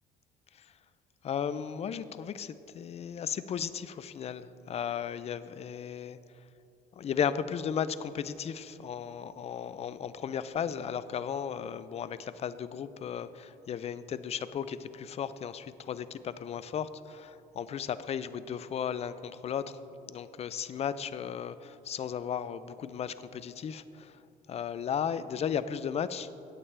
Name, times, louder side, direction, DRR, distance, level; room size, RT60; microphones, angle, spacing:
voice 1, 1.2-6.2 6.9-24.2 24.5-26.3, left 8 dB, 40° left, 14 dB, 0.4 m, -35 dB
15.5 x 8.7 x 3.4 m, 2.8 s
cardioid pair, 110°, 17 cm